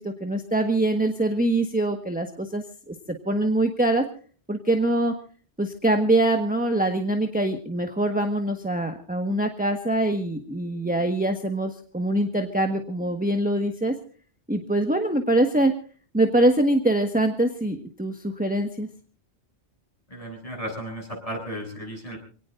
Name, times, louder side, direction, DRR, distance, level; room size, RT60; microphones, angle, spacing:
voice 1, 0.0-4.1 4.5-5.1 5.6-14.0 14.5-15.7 16.1-18.9, right 1 dB, 10° right, 4 dB, 1.4 m, -24 dB
voice 2, 20.1-22.2, equal, 30° left, 1 dB, 7.1 m, -34 dB
27.5 x 18.5 x 2.6 m, 0.41 s
omnidirectional pair, 1.1 m